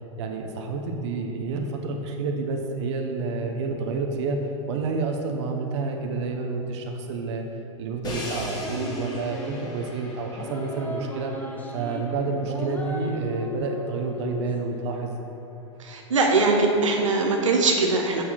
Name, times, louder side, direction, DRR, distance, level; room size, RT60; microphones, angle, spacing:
voice 1, 0.2-7.4 7.8-11.5 11.7-15.2, right 4 dB, 65° right, 3 dB, 1.0 m, -29 dB
Crash cymbal, 8.0-14.0, left 1 dB, 25° left, 2.0 m, -39 dB
sound 1, 8.6-9.9 10.4-12.0 12.4-14.5, left 3 dB, 10° left, 1.1 m, -36 dB
voice 2, 15.8-18.2, right 3 dB, 90° right, 1 dB, 1.0 m, -21 dB
7.1 x 6.7 x 5.8 m, 2.8 s
hypercardioid pair, 105°, 16 cm